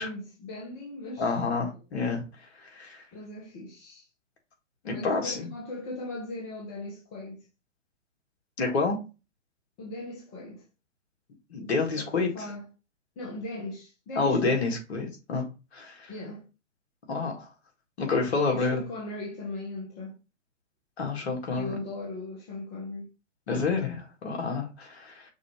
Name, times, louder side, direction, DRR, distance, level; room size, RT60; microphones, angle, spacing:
voice 1, 0.0-1.4 3.1-4.1 4.9-7.5 9.8-10.6 11.9-12.7 13.2-14.6 16.1-16.4 18.5-20.1 21.6-23.1, left 2 dB, 30° left, 1.3 m, -38 dB
voice 2, 1.2-2.2 2.7-3.0 4.8-5.5 8.6-9.0 11.5-12.3 14.2-15.4 15.7-16.1 17.1-17.4 18.0-18.8 21.0-21.7 23.5-25.1, left 4 dB, 60° left, 1.7 m, -28 dB
5.9 x 2.7 x 3.0 m
figure-of-eight pair, 115°, 37 cm